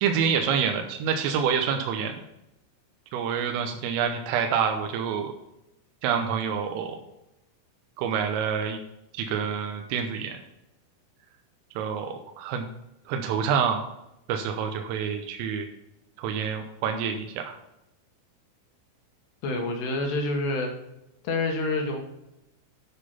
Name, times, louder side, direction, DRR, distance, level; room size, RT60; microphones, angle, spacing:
voice 1, 0.0-2.3 3.1-5.3 6.0-7.0 8.0-8.8 9.1-10.4 11.8-12.7 13.1-13.8 14.3-15.7 16.2-17.6, right 7 dB, 85° right, 4 dB, 3.4 m, -27 dB
voice 2, 19.4-20.7 21.2-22.0, left 2 dB, 70° left, 3 dB, 2.9 m, -27 dB
9.9 x 6.3 x 5.6 m, 0.87 s
omnidirectional pair, 5.8 m